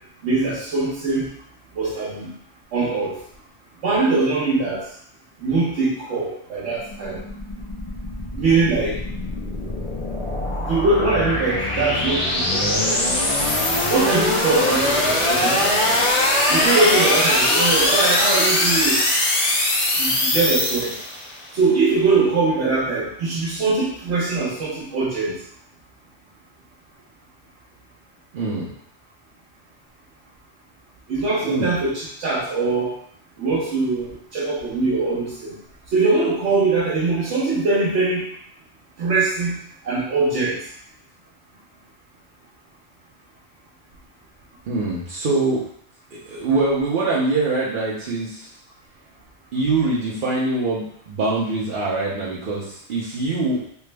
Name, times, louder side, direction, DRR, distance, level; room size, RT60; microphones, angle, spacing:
voice 1, 0.2-1.3 1.7-2.3 2.7-3.2 3.8-4.8 5.4-7.2 8.3-9.0 10.7-13.4 13.9-16.0 16.5-19.0 19.9-20.9 21.5-25.4 31.1-32.9 33.4-35.6 35.9-38.3 39.0-39.6 39.8-40.6, right 3 dB, 75° right, -7 dB, 1.1 m, -22 dB
sound 1, 6.8-21.4, left 1 dB, 40° left, 0.5 m, -21 dB
voice 2, 28.3-28.7 31.4-31.7 44.7-45.6 46.1-48.5 49.5-53.6, right 3 dB, 55° right, -7 dB, 0.7 m, -23 dB
3.3 x 2.0 x 3.3 m, 0.66 s
omnidirectional pair, 1.2 m